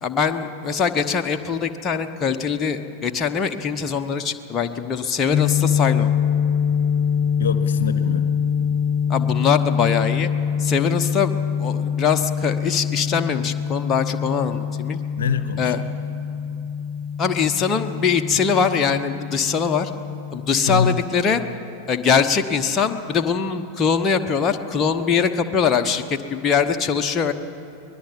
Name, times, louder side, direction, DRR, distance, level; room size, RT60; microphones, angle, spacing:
voice 1, 0.0-6.1 9.1-10.3 10.6-11.3 11.6-15.0 15.6-15.8 17.2-19.9 20.3-21.4 21.9-27.3, left 6 dB, 25° left, 5 dB, 1.1 m, -22 dB
sound 1, 5.3-20.9, left 7 dB, 45° left, 0.5 m, -24 dB
voice 2, 7.4-8.3 15.2-15.9 20.7-21.0, left 6 dB, 65° left, 11 dB, 1.0 m, -25 dB
23.5 x 20.0 x 7.3 m, 2.7 s
figure-of-eight pair, 90°, 0 cm